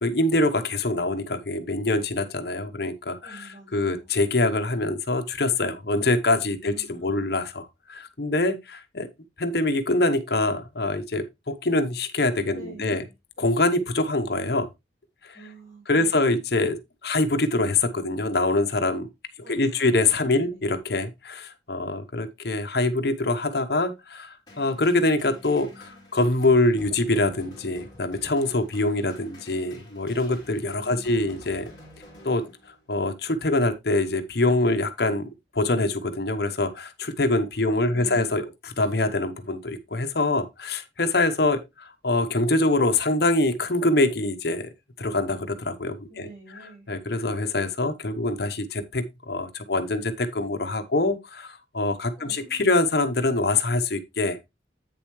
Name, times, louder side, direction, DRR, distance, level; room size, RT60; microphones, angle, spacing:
voice 1, 0.0-3.4 3.7-9.1 9.4-13.0 13.4-14.7 15.2-15.3 15.9-16.8 17.0-19.1 19.5-31.7 32.2-32.5 32.9-35.3 35.5-44.7 45.0-46.3 46.9-54.4, left 2 dB, 55° left, 0.9 m, -24 dB
voice 2, 3.2-4.1 6.6-7.4 12.5-13.1 15.3-16.1 19.4-20.7 30.8-31.5 37.6-38.3 46.1-46.9 52.2-52.7, right 2 dB, 30° right, 5.2 m, -47 dB
sound 1, 24.5-33.0, left 1 dB, 20° left, 2.9 m, -49 dB
8.6 x 6.9 x 3.1 m
head